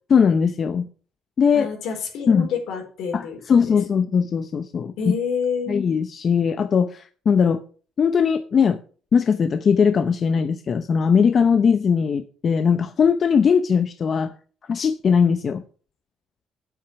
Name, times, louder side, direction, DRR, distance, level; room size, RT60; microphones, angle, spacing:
voice 1, 0.1-0.9 1.4-1.7 2.3-2.5 3.1-4.9 5.7-7.6 8.0-8.8 9.1-14.3 14.7-15.6, left 6 dB, 45° left, 0.8 m, -19 dB
voice 2, 1.5-3.8 5.0-5.7, left 6 dB, 80° left, 4.5 m, -28 dB
8.7 x 8.3 x 5.9 m
cardioid pair, 100°, 0 cm